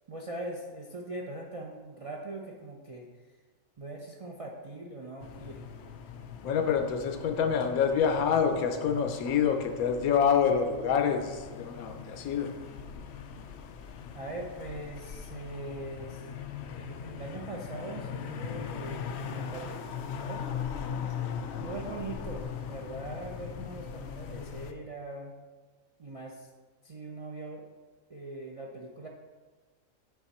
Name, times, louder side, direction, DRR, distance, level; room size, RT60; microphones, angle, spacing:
voice 1, 0.1-3.1 3.8-5.7 14.1-16.3 16.7-20.5 21.6-25.4 26.0-26.5 26.8-27.6 28.1-29.1, right 2 dB, 55° right, -1 dB, 0.3 m, -41 dB
sound 1, 5.2-24.7, left 7 dB, 65° left, 0.7 m, -40 dB
voice 2, 6.4-12.5, left 7 dB, 85° left, 6 dB, 1.1 m, -27 dB
8.5 x 3.6 x 4.3 m, 1.3 s
omnidirectional pair, 1.5 m